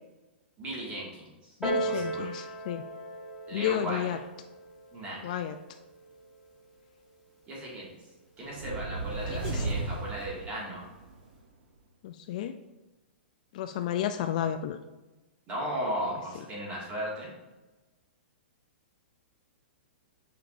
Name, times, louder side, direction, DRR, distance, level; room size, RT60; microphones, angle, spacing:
voice 1, 0.6-1.3 1.8-2.2 3.5-4.1 4.9-5.3 7.5-7.9 8.4-10.9 15.5-17.3, equal, 20° right, -4 dB, 1.9 m, -36 dB
voice 2, 1.6-2.8 3.5-4.2 5.2-5.6 9.3-9.7 12.0-12.5 13.5-14.8, left 10 dB, 40° left, 8 dB, 0.3 m, -32 dB
Piano, 1.6-6.8 7.6-7.7, right 1 dB, 5° right, 1.1 m, -37 dB
sound 1, 8.5-11.2, right 3 dB, 60° right, 0.9 m, -34 dB
7.8 x 5.2 x 2.6 m, 1.1 s
hypercardioid pair, 165°, 6 cm